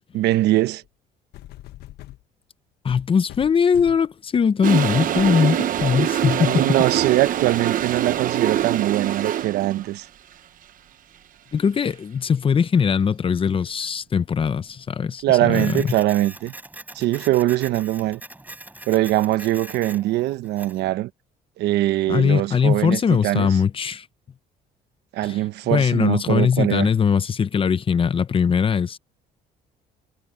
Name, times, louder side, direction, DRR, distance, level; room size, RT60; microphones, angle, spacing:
voice 1, 0.1-0.8 6.5-10.1 15.2-16.5 16.9-18.2 18.9-21.1 21.6-23.5 25.1-26.9, right 15 dB, 80° right, 1.1 m, -22 dB
sound 1, 0.8-0.9 1.3-2.2 2.9-4.1 4.6-4.8 5.1-5.4 5.8-6.1 6.8-6.9, left 15 dB, 75° left, 1.3 m, -41 dB
voice 2, 2.8-6.8 11.5-15.9 22.1-24.1 25.2-25.4 25.7-29.0, left 6 dB, 30° left, 0.8 m, -20 dB
Toilet flush, 4.6-9.9, right 11 dB, 55° right, 1.1 m, -24 dB
Printer, 15.5-20.9, right 2 dB, 10° right, 4.4 m, -41 dB
cardioid pair, 110°, 17 cm